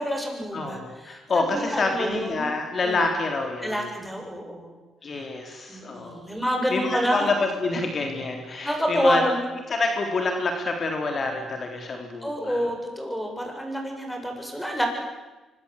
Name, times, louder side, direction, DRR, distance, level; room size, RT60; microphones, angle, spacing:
voice 1, 0.0-2.5 2.8-3.0 3.6-4.7 5.1-5.2 5.7-7.3 8.6-9.5 12.2-14.9, equal, 5° left, 2 dB, 7.9 m, -28 dB
voice 2, 0.5-3.9 5.0-6.2 6.7-9.2 9.7-12.7, left 3 dB, 45° left, 3 dB, 3.9 m, -27 dB
26.0 x 25.0 x 8.5 m, 1.1 s
cardioid pair, 90°, 0 cm